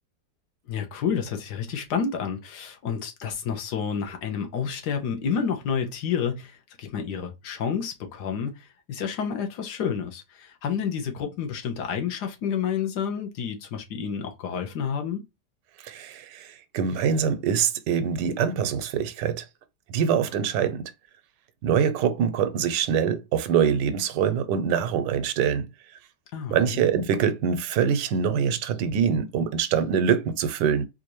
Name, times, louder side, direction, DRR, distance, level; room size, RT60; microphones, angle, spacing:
voice 1, 0.7-15.2 26.3-26.8, left 7 dB, 75° left, 1.4 m, -30 dB
voice 2, 15.8-19.4 19.9-20.9 21.6-25.7 26.5-30.9, right 7 dB, 90° right, 1.2 m, -24 dB
4.3 x 2.5 x 3.0 m
omnidirectional pair, 1.8 m